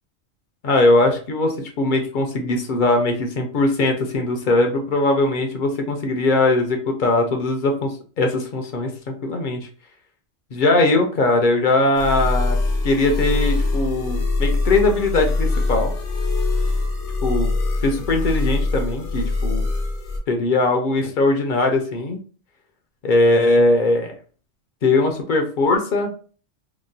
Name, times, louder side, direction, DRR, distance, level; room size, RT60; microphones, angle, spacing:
voice 1, 0.6-9.6 10.5-12.6 12.8-15.9 17.2-17.5 17.8-19.7 20.3-22.2 23.0-24.1 24.8-26.1, left 2 dB, 55° left, 4 dB, 0.6 m, -20 dB
sound 1, 12.0-20.2, left 3 dB, 75° left, 1.0 m, -23 dB
2.9 x 2.1 x 2.6 m, 0.39 s
omnidirectional pair, 1.2 m